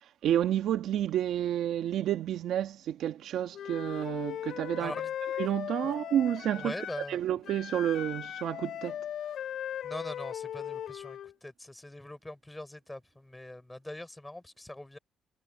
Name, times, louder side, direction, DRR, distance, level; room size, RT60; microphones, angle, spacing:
voice 1, 0.2-4.9 5.4-6.7 7.1-9.0, right 11 dB, 75° right, 1.2 m, -30 dB
Wind instrument woodwind instrument, 3.5-7.2 7.4-11.3, left 10 dB, 70° left, 3.1 m, -38 dB
voice 2, 4.8-5.1 5.8-6.0 6.5-7.2 9.8-15.0, left 1 dB, 10° left, 4.8 m, -42 dB
cardioid pair, 90°, 0 cm